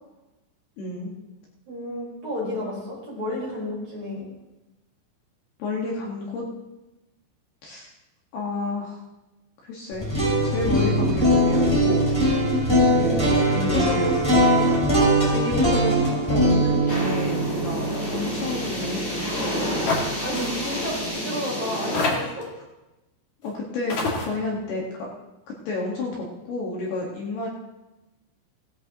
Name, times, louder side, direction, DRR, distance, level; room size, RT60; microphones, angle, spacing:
voice 1, 0.8-1.1 5.6-6.4 7.6-7.9 8.3-9.0 9.6-10.1 10.4-12.2 12.8-13.1 13.5-14.6 15.3-19.8 23.4-24.8 25.7-27.5, left 2 dB, 60° left, -4 dB, 3.4 m, -30 dB
voice 2, 1.7-4.3 13.0-13.4 14.5-14.7 19.6-22.5, equal, 25° right, -6 dB, 5.2 m, -32 dB
sound 1, 9.9-19.9, equal, 5° left, 4.9 m, -21 dB
sound 2, 16.9-22.0, equal, 20° left, 5.3 m, -29 dB
sound 3, 19.9-20.1 20.3-20.5 21.4-21.5 21.9-22.5 23.4-23.5 23.9-24.3, left 3 dB, 45° left, 2.8 m, -25 dB
18.5 x 13.5 x 3.0 m, 1.0 s
omnidirectional pair, 5.7 m